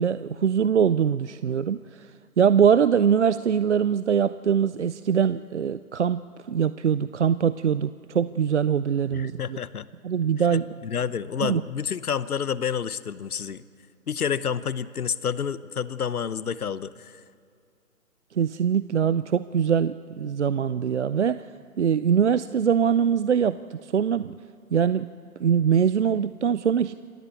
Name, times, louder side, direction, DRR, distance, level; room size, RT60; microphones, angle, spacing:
voice 1, 0.0-2.1 2.4-6.2 6.5-9.6 10.0-10.7 11.4-11.6 18.3-21.4 21.8-24.4 24.7-25.1 25.4-26.9, right 7 dB, 50° right, 14 dB, 0.5 m, -23 dB
voice 2, 9.1-9.9 10.5-13.6 14.1-17.2, left 7 dB, 70° left, 17 dB, 1.0 m, -29 dB
27.0 x 14.0 x 8.3 m, 2.3 s
figure-of-eight pair, 150°, 46 cm